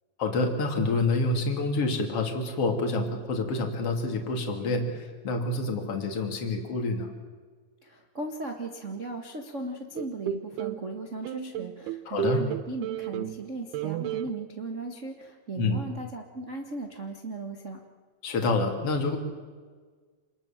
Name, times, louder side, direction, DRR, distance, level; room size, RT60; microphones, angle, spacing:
voice 1, 0.2-7.1 12.1-12.4 15.6-15.8 18.2-19.2, left 3 dB, 40° left, 3 dB, 3.3 m, -27 dB
voice 2, 7.8-17.8, right 2 dB, 65° right, 1 dB, 0.7 m, -37 dB
sound 1, 10.0-10.8 11.2-13.5 13.7-14.3, right 9 dB, 85° right, 2.9 m, -32 dB
27.5 x 20.5 x 7.4 m, 1.5 s
omnidirectional pair, 4.5 m